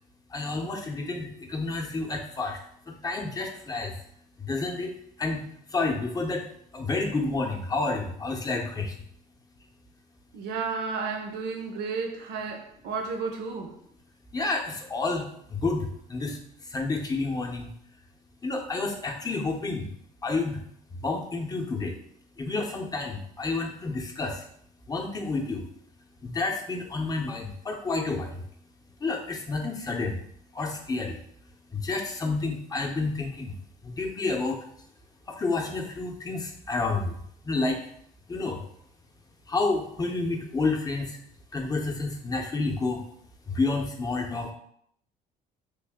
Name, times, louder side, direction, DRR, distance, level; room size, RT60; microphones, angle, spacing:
voice 1, 0.3-2.6 3.0-3.9 4.4-4.9 5.2-5.4 5.7-6.4 6.7-8.9 14.3-16.4 16.7-17.7 18.4-19.9 20.2-20.6 21.0-22.0 22.4-24.4 24.9-25.7 26.2-28.4 29.0-30.2 30.5-31.2 31.7-33.5 33.8-34.6 35.3-37.1 37.4-37.8 38.3-38.6 39.5-41.2 41.5-43.0 43.5-44.5, left 3 dB, 20° left, 0.6 m, -29 dB
voice 2, 10.3-13.7, right 4 dB, 80° right, 0.7 m, -32 dB
3.2 x 2.5 x 3.5 m
cardioid pair, 110°, 17 cm